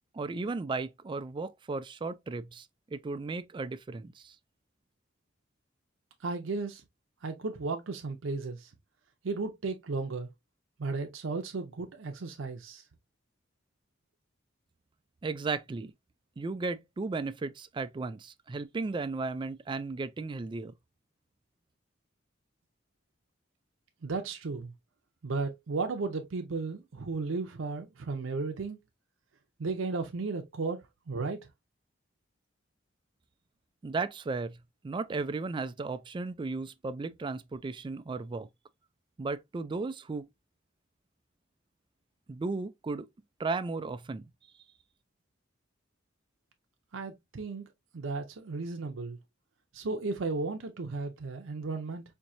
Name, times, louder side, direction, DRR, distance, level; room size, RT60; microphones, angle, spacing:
voice 1, 0.1-4.4 15.2-15.9 16.4-20.7 33.8-34.6 34.8-38.5 39.2-40.3 42.3-43.1 43.4-44.2, right 3 dB, 25° right, 0.3 m, -35 dB
voice 2, 6.2-6.8 7.2-8.7 9.2-10.3 10.8-12.8 24.0-24.7 25.2-28.8 29.6-30.8 31.1-31.5 46.9-47.6 47.9-49.2 49.7-52.0, right 3 dB, 85° right, 0.6 m, -34 dB
4.5 x 2.7 x 2.5 m
head